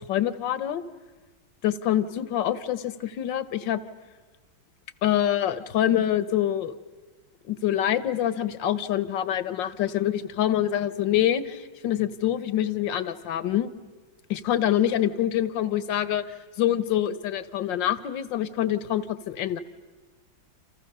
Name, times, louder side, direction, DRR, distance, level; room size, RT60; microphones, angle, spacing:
voice 1, 0.1-0.8 1.6-3.8 5.0-6.7 7.5-13.7 14.3-16.2 16.6-19.6, left 11 dB, 65° left, 14 dB, 1.6 m, -25 dB
29.5 x 27.5 x 6.8 m, 1.3 s
omnidirectional pair, 2.2 m